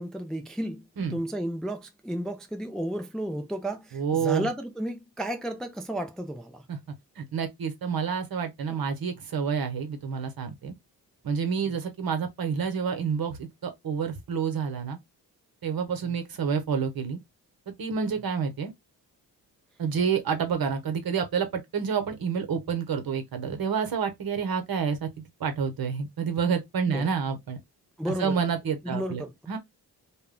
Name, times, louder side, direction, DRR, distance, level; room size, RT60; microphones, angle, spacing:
voice 1, 0.0-0.9 1.1-6.7 8.7-8.8 11.6-11.7 16.0-16.1 26.9-27.1 28.0-28.4 28.8-29.3, right 1 dB, ahead, 0.4 m, -33 dB
voice 2, 3.9-4.5 6.7-6.8 7.2-10.7 11.2-15.0 15.6-17.2 17.7-18.7 19.8-25.1 25.4-27.6 28.2-29.2 29.5-29.6, right 6 dB, 55° right, 0.9 m, -28 dB
2.1 x 2.0 x 3.6 m
cardioid pair, 55°, 41 cm